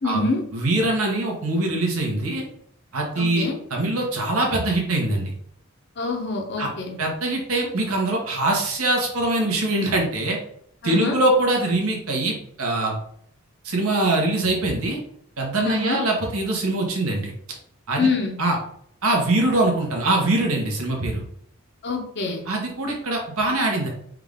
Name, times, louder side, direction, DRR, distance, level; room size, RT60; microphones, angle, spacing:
voice 1, 0.0-0.5 3.2-3.6 6.0-7.0 10.8-11.2 15.6-16.0 18.0-18.3 21.8-22.4, left 3 dB, 50° left, 2 dB, 0.7 m, -25 dB
voice 2, 0.5-2.4 2.9-5.3 6.6-6.7 7.0-10.4 10.8-13.0 13.6-15.0 15.4-17.3 17.9-18.1 18.4-18.6 19.0-21.2 22.5-23.9, right 2 dB, 85° right, 0 dB, 1.1 m, -23 dB
3.6 x 2.5 x 3.4 m, 0.67 s
head